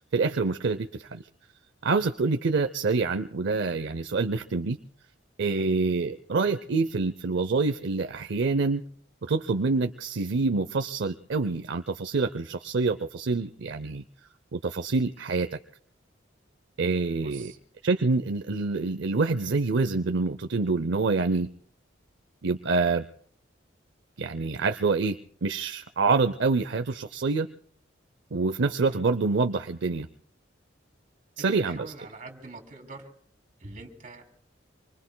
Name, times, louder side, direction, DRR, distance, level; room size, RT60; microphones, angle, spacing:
voice 1, 0.1-1.2 1.8-4.8 5.4-8.8 9.2-14.0 14.5-15.6 16.8-17.5 17.8-21.5 22.4-23.1 24.2-27.5 28.3-30.1 31.4-31.9, right 3 dB, 65° right, 9 dB, 0.6 m, -26 dB
voice 2, 17.2-17.6 28.9-29.0 31.5-33.1 33.6-34.3, right 3 dB, 45° right, 2 dB, 3.1 m, -45 dB
26.5 x 24.0 x 2.2 m, 0.62 s
head